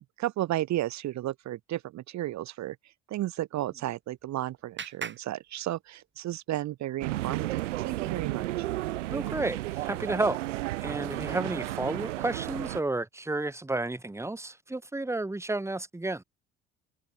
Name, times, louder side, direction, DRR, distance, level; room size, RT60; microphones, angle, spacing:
voice 1, 0.2-2.7 3.1-8.6, right 14 dB, 45° right, 1.6 m, -33 dB
Clapping, 3.7-6.3, right 6 dB, 30° right, 4.5 m, -44 dB
sound 1, 7.0-12.8, right 16 dB, 75° right, 0.6 m, -33 dB
voice 2, 9.1-10.4 10.8-16.2, right 2 dB, 5° right, 2.0 m, -31 dB
figure-of-eight pair, 60°, 38 cm